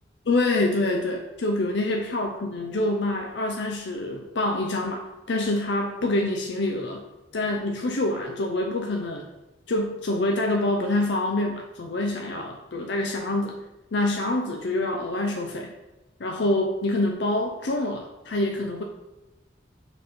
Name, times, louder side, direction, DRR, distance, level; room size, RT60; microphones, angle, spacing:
voice 1, 0.3-7.0 7.3-9.3 9.7-13.6 13.9-15.7 16.2-18.8, left 2 dB, 80° left, 2 dB, 0.6 m, -26 dB
5.6 x 4.1 x 5.4 m, 1.0 s
head